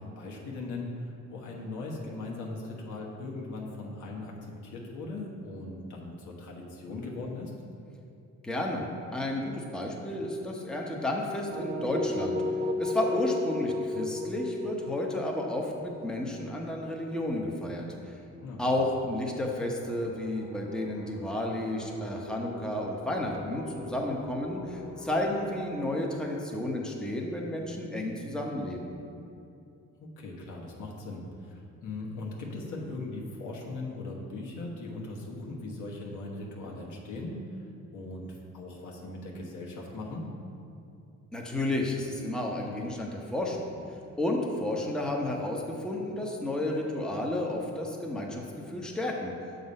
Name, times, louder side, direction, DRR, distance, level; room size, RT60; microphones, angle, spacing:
voice 1, 0.0-7.5 18.4-18.8 30.0-37.4 37.9-40.3, left 2 dB, 80° left, -2 dB, 1.3 m, -39 dB
voice 2, 8.4-12.4 12.8-18.1 18.6-28.9 41.3-43.8 44.2-49.3, left 1 dB, 5° left, -1 dB, 0.8 m, -32 dB
sound 1, 11.5-17.4, left 2 dB, 45° right, 0.7 m, -33 dB
sound 2, 16.4-27.8, left 3 dB, 45° left, 1.1 m, -48 dB
6.8 x 4.0 x 5.3 m, 2.6 s
cardioid pair, 90°, 30 cm